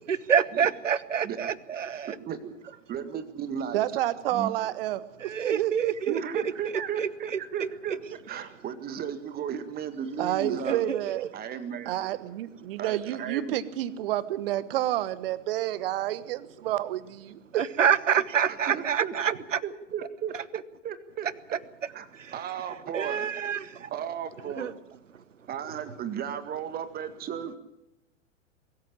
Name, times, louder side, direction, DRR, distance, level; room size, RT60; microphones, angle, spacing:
voice 1, 0.1-2.1 5.3-5.9 7.0-7.1 10.7-11.0 17.6-19.3 22.9-23.9 24.6-24.7, right 7 dB, 75° right, 20 dB, 1.1 m, -26 dB
voice 2, 2.3-3.9 4.3-4.5 6.1-10.8 11.3-11.9 12.8-13.5 18.4-21.3 21.9-23.3 23.9-24.8 25.5-27.6, right 8 dB, 25° right, 12 dB, 1.9 m, -35 dB
voice 3, 3.7-6.2 10.2-11.3 11.9-17.6, right 13 dB, 50° right, 18 dB, 1.2 m, -29 dB
23.0 x 14.0 x 8.7 m, 0.90 s
figure-of-eight pair, 100°, 38 cm